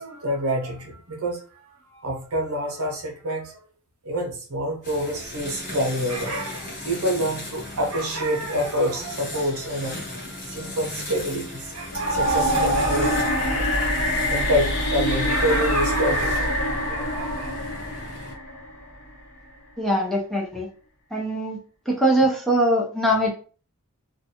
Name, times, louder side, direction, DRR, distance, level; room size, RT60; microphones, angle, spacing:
voice 1, 0.0-3.6 4.0-17.5, equal, 70° right, 2 dB, 0.8 m, -27 dB
sound 1, 4.8-18.3, left 1 dB, 40° left, 1.0 m, -37 dB
sound 2, 11.9-19.0, equal, 80° left, 1.0 m, -24 dB
voice 2, 19.8-20.7 21.1-21.6 21.9-23.3, right 1 dB, ahead, -2 dB, 0.6 m, -22 dB
2.5 x 2.3 x 2.7 m, 0.39 s
head